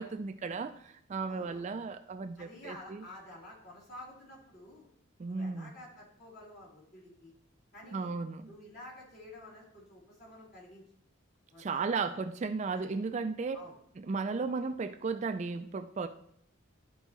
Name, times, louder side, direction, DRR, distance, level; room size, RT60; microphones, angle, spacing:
voice 1, 0.0-3.0 5.2-5.7 7.9-8.5 11.6-13.6 14.0-16.1, right 4 dB, 35° right, 8 dB, 0.3 m, -35 dB
voice 2, 1.3-1.7 2.4-4.9 5.3-7.3 7.7-8.1 8.5-10.8 11.5-12.2 12.7-12.9 13.5-13.8, left 1 dB, 50° left, -7 dB, 3.4 m, -50 dB
12.0 x 4.5 x 3.1 m, 0.69 s
head